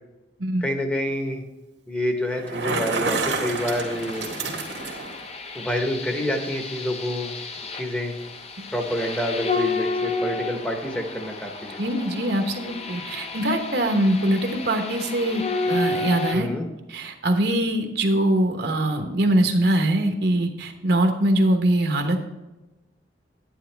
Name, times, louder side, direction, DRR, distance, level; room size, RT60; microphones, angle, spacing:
voice 1, 0.6-1.4 1.9-4.3 5.5-7.3 7.7-8.2 8.7-11.8 16.3-16.7, left 1 dB, 5° left, 4 dB, 1.0 m, -27 dB
Bicycle, 2.3-5.2, right 3 dB, 80° right, 1.8 m, -29 dB
sound 1, 3.6-16.4, left 3 dB, 35° left, 0.8 m, -31 dB
voice 2, 11.8-16.5 16.9-22.2, right 1 dB, 60° right, 5 dB, 1.1 m, -22 dB
10.0 x 9.5 x 3.4 m, 1.1 s
head